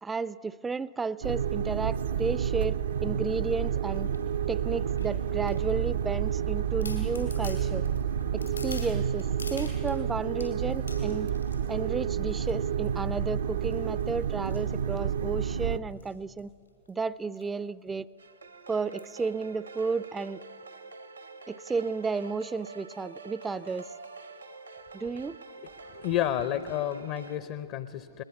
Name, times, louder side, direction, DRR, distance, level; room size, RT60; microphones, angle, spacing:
voice 1, 0.0-4.1 4.5-7.8 8.3-11.3 11.7-16.5 16.9-18.1 18.7-20.4 21.5-23.9 24.9-25.4, right 4 dB, 15° right, 19 dB, 0.4 m, -33 dB
sound 1, 1.2-15.8, right 8 dB, 65° right, 0.6 m, -30 dB
sound 2, 3.9-4.2 5.0-6.0 6.5-6.6 6.8-10.0 10.4-11.8 12.3-12.6 12.8-13.2 13.6-15.4 15.9-16.1 16.4-16.5 16.7-16.9 17.4-17.5 17.9-18.0 19.0-19.2 19.8-19.9, left 3 dB, 85° left, 4.5 m, -47 dB
sound 3, 18.2-27.4, right 4 dB, 85° right, 1.3 m, -47 dB
voice 2, 25.8-28.2, left 11 dB, 45° left, 13 dB, 0.7 m, -31 dB
20.5 x 20.5 x 7.0 m, 2.2 s
figure-of-eight pair, 90°, 0 cm